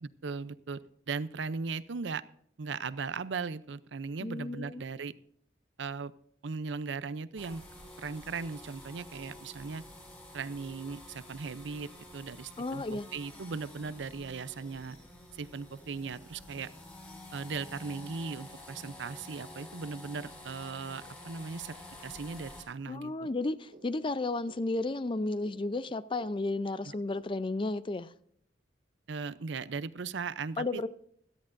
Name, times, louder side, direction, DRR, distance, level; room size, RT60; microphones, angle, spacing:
voice 1, 0.0-0.8 1.1-2.2 2.6-5.1 5.8-6.1 6.4-7.6 8.0-9.8 10.3-15.0 15.3-16.7 17.3-21.8 22.0-23.1 26.8-26.9 29.1-30.8, right 4 dB, 70° right, 0.6 m, -38 dB
voice 2, 4.2-4.8 12.6-13.1 22.9-28.1 30.6-30.9, left 2 dB, 25° left, 0.5 m, -33 dB
sound 1, 7.4-22.6, left 1 dB, 10° left, 4.8 m, -49 dB
sound 2, 20.7-27.2, right 1 dB, 50° right, 2.1 m, -60 dB
17.0 x 13.0 x 2.6 m
head